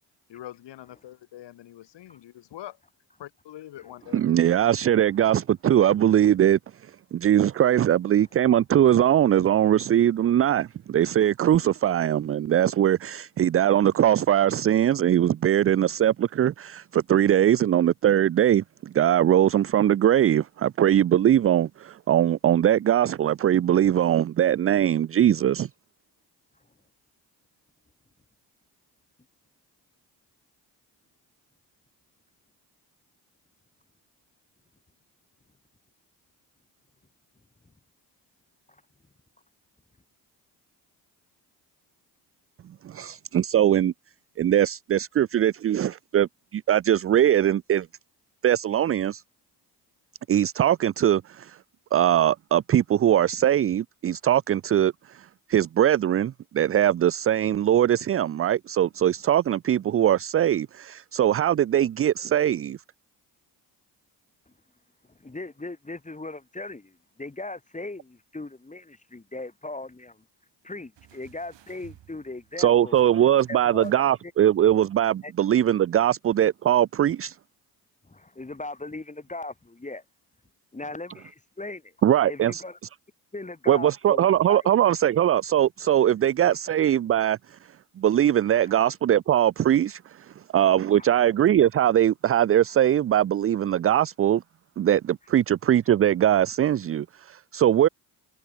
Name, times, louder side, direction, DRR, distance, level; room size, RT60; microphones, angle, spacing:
voice 1, 0.3-2.8 3.2-4.2, left 13 dB, 75° left, 2.2 m, -43 dB
voice 2, 4.1-6.6 7.1-25.7 42.8-43.9 44.4-47.9 48.4-49.2 50.3-51.6 51.9-62.8 72.6-77.4 82.0-82.6 83.7-87.6 88.0-94.4 94.8-97.9, right 11 dB, 35° right, 0.4 m, -21 dB
voice 3, 65.2-70.2 70.6-73.0 73.5-74.1 75.2-75.3 76.0-76.1 78.1-80.0 80.7-81.9 82.3-82.8 83.3-84.7 86.5-86.6 88.6-88.7 91.0-91.1, left 2 dB, 15° left, 1.8 m, -38 dB
sound 1, 70.9-74.4 75.7-75.8, right 12 dB, 80° right, 5.7 m, -55 dB
supercardioid pair, 65°, 43 cm